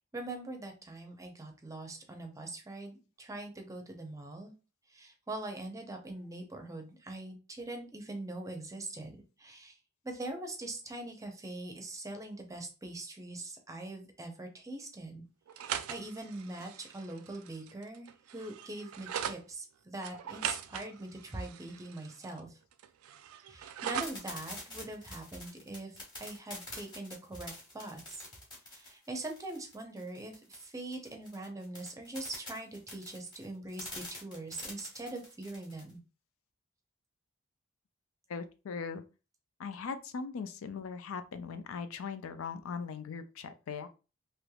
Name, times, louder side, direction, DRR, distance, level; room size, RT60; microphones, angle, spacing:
voice 1, 0.1-4.5 4.9-9.8 10.0-15.2 15.6-22.5 23.5-25.9 26.2-28.2 28.7-36.0, right 2 dB, 15° right, 4 dB, 0.6 m, -42 dB
sound 1, 15.5-19.4 20.0-22.4 22.7-24.3, right 9 dB, 80° right, 0.3 m, -40 dB
sound 2, 24.0-35.9, left 1 dB, 20° left, 1.4 m, -46 dB
voice 2, 38.3-39.0 39.6-43.9, left 5 dB, 70° left, 10 dB, 0.4 m, -39 dB
3.2 x 3.0 x 2.3 m, 0.32 s
head